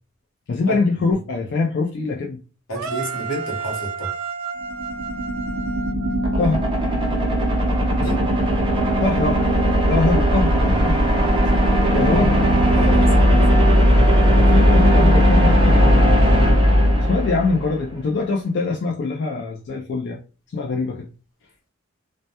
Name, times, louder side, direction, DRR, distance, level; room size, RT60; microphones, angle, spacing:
voice 1, 0.5-2.4 6.4-6.7 9.0-9.4 9.9-11.3 11.9-12.4 13.3-13.5 14.3-16.5 17.0-20.2 20.5-21.1, left 3 dB, 55° left, 0.3 m, -23 dB
voice 2, 2.7-4.1 7.9-8.3 10.6-10.7 12.7-13.3, right 1 dB, 85° left, 0.9 m, -30 dB
sound 1, 2.8-6.9, right 6 dB, 80° right, 0.4 m, -31 dB
sound 2, 4.6-17.8, equal, 25° right, 0.5 m, -17 dB
2.1 x 2.1 x 2.7 m
head